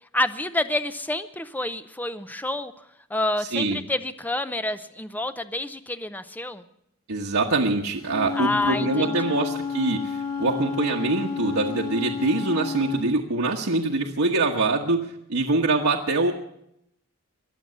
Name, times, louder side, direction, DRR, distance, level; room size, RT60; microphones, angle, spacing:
voice 1, 0.1-2.7 3.1-6.6 8.3-9.4, left 1 dB, 10° left, 11 dB, 0.6 m, -28 dB
voice 2, 7.1-16.3, right 2 dB, 80° right, -1 dB, 1.3 m, -24 dB
Wind instrument woodwind instrument, 8.0-13.1, left 5 dB, 90° left, 2.5 m, -30 dB
22.5 x 7.6 x 8.1 m, 0.77 s
head